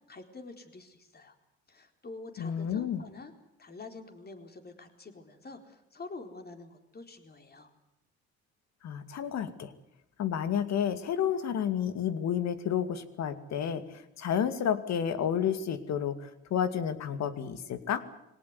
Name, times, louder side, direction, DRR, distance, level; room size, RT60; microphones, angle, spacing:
voice 1, 0.1-1.3 1.7-3.3 3.6-7.7, left 3 dB, 35° left, 6 dB, 4.3 m, -47 dB
voice 2, 2.4-3.0 8.8-9.7 10.2-18.0, left 8 dB, 65° left, 11 dB, 2.4 m, -31 dB
22.5 x 18.0 x 9.6 m, 0.84 s
supercardioid pair, 75°, 30 cm